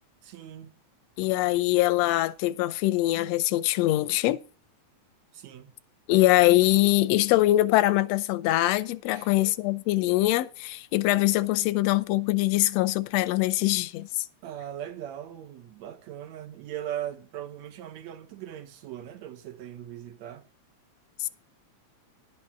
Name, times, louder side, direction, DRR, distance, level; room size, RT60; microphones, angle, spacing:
voice 1, 0.2-0.8 5.3-5.8 9.1-9.3 14.4-20.5, right 11 dB, 70° right, 2.4 m, -39 dB
voice 2, 1.2-4.4 6.1-14.2 21.2-21.3, left 16 dB, 75° left, 1.7 m, -23 dB
11.5 x 5.5 x 6.1 m
omnidirectional pair, 3.4 m